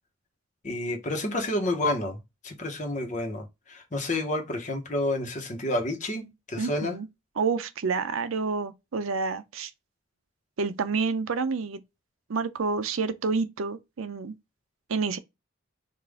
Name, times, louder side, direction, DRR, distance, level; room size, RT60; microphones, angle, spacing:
voice 1, 0.6-7.0, left 1 dB, 35° left, 1.0 m, -30 dB
voice 2, 6.6-7.1 7.4-9.7 10.6-11.8 12.3-14.3 14.9-15.2, right 4 dB, 85° right, 0.5 m, -28 dB
5.2 x 2.5 x 3.5 m
head